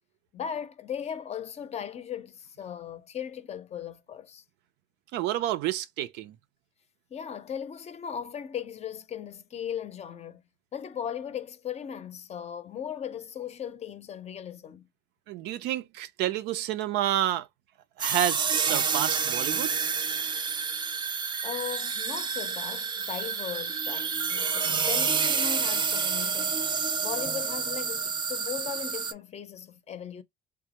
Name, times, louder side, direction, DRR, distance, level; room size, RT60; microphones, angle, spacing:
voice 1, 0.3-4.4 7.1-10.4 10.7-14.9 21.4-26.6 27.0-30.2, left 8 dB, 40° left, 0.5 m, -37 dB
voice 2, 5.1-6.4 15.3-17.5 18.0-19.7, right 12 dB, 85° right, 0.4 m, -29 dB
sound 1, 18.0-29.1, right 6 dB, 25° right, 0.4 m, -29 dB
3.4 x 2.0 x 2.9 m
cardioid pair, 110°, 17 cm